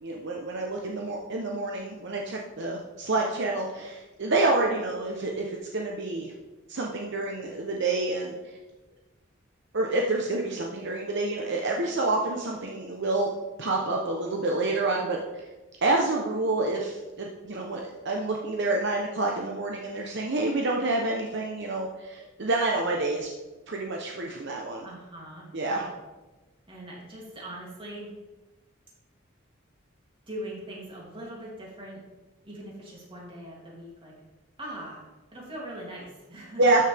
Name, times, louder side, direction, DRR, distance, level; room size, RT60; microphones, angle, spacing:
voice 1, 0.0-6.3 6.7-8.4 9.7-13.3 13.6-15.2 15.8-23.3 23.7-24.8 25.5-25.8 36.6-36.8, right 2 dB, 60° right, 0 dB, 0.9 m, -28 dB
voice 2, 24.8-25.9 26.7-28.1 30.3-32.0 32.4-34.1 34.6-35.0 35.3-36.6, right 1 dB, 25° right, -4 dB, 3.0 m, -41 dB
12.5 x 6.6 x 3.5 m, 1.2 s
head